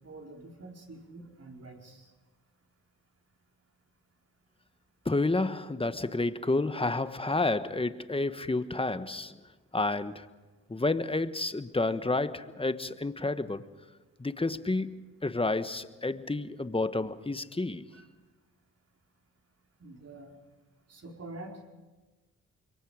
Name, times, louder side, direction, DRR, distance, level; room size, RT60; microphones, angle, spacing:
voice 1, 0.0-2.1 17.9-18.0 19.8-20.3 20.9-21.6, right 2 dB, 45° right, 4.8 m, -46 dB
voice 2, 5.0-9.4 9.7-10.3 10.7-13.6 14.2-14.9 15.2-17.9, left 2 dB, 15° left, 1.3 m, -30 dB
26.0 x 22.5 x 5.1 m
supercardioid pair, 50°, 33 cm